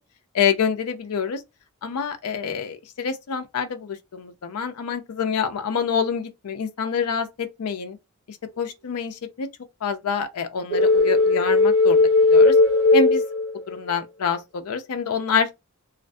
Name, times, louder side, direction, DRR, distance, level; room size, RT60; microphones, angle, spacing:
voice 1, 0.3-1.4 1.8-8.0 8.3-9.5 9.8-12.0 12.3-12.6 12.9-13.2 13.7-15.5, left 6 dB, 85° left, 0.4 m, -26 dB
sound 1, 10.7-13.9, left 3 dB, 30° right, 1.3 m, -17 dB
2.5 x 2.4 x 2.2 m
head